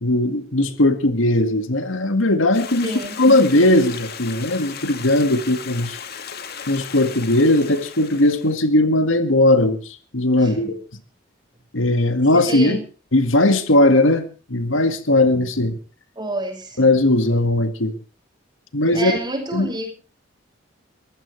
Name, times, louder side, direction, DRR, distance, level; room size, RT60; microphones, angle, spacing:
voice 1, 0.0-2.9 3.2-6.0 6.7-10.8 11.7-12.8 13.1-15.8 16.8-17.9 18.7-19.1 19.5-19.7, left 1 dB, 80° left, 9 dB, 2.0 m, -18 dB
Stream, 2.5-8.6, left 7 dB, 55° left, 2.1 m, -36 dB
voice 2, 2.8-3.2 10.4-10.7 12.3-12.8 16.2-16.8 18.9-19.9, right 1 dB, 20° right, 4 dB, 6.4 m, -28 dB
23.0 x 15.5 x 3.3 m, 0.35 s
head